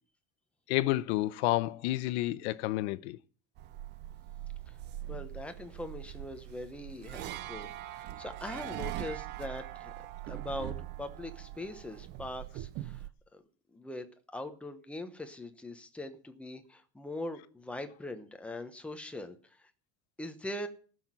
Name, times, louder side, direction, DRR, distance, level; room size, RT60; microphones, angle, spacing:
voice 1, 0.7-3.2, left 17 dB, 85° left, 0.9 m, -30 dB
sound 1, 3.6-13.1, right 14 dB, 35° right, 0.5 m, -42 dB
voice 2, 5.1-9.9 10.3-13.0 13.3-13.4 13.7-14.1 14.3-19.4 20.2-20.7, left 1 dB, 5° left, 0.9 m, -41 dB
14.5 x 6.3 x 8.9 m
cardioid pair, 175°, 32 cm